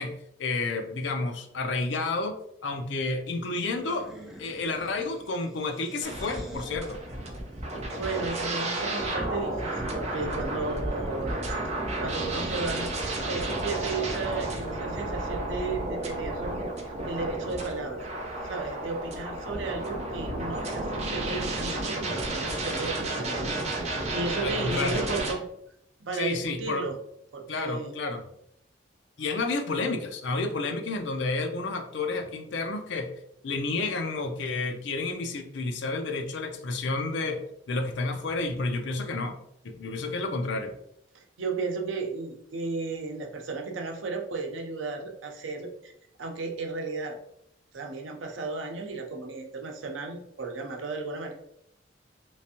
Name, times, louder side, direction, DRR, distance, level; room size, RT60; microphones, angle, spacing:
voice 1, 0.0-2.4 2.6-4.1 4.4-7.0 24.4-25.1 26.1-26.9 27.5-28.2 29.2-33.1 33.4-39.4 39.6-40.7, left 3 dB, 65° left, 6 dB, 0.5 m, -30 dB
sound 1, 3.6-9.0, equal, ahead, 0.5 m, -50 dB
sound 2, 6.0-25.3, right 2 dB, 35° right, 0.7 m, -32 dB
voice 2, 8.0-11.4 11.6-11.7 12.0-12.9 13.2-16.7 17.0-18.1 18.4-25.4 26.0-27.0 27.3-27.9 41.1-45.9 46.2-47.2 47.7-51.3, right 3 dB, 85° right, 3 dB, 0.7 m, -34 dB
3.3 x 3.1 x 2.8 m, 0.74 s
head